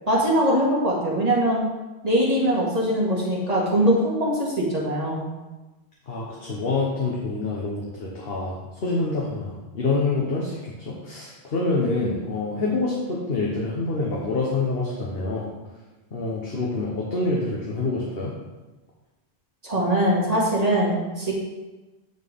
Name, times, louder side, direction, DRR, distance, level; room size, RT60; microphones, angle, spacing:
voice 1, 0.1-1.7 2.0-5.3 19.6-21.3, right 1 dB, 35° right, -4 dB, 1.9 m, -22 dB
voice 2, 6.1-15.5 16.1-18.3, left 3 dB, 60° left, -4 dB, 1.3 m, -26 dB
10.0 x 4.5 x 3.6 m, 1.1 s
omnidirectional pair, 1.1 m